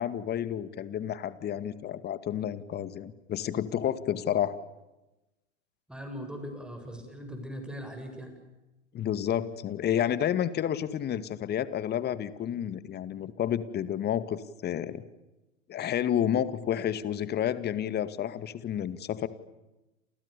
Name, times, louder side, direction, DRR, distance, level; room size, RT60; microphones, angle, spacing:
voice 1, 0.0-4.6 8.9-15.0 15.7-19.3, left 10 dB, 25° left, 14 dB, 2.2 m, -30 dB
voice 2, 5.9-8.3, equal, ahead, 5 dB, 7.9 m, -40 dB
30.0 x 28.5 x 7.0 m, 1.0 s
hypercardioid pair, 110°, 38 cm